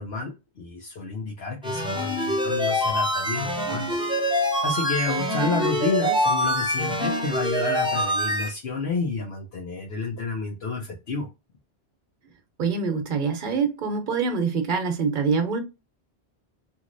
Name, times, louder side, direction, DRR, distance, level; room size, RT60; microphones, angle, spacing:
voice 1, 0.0-4.0 4.3-11.3, left 4 dB, 70° left, 1.0 m, -30 dB
sound 1, 1.6-8.5, equal, 5° right, 0.5 m, -25 dB
voice 2, 12.6-15.6, right 5 dB, 55° right, 0.8 m, -25 dB
3.0 x 2.7 x 2.5 m
omnidirectional pair, 1.1 m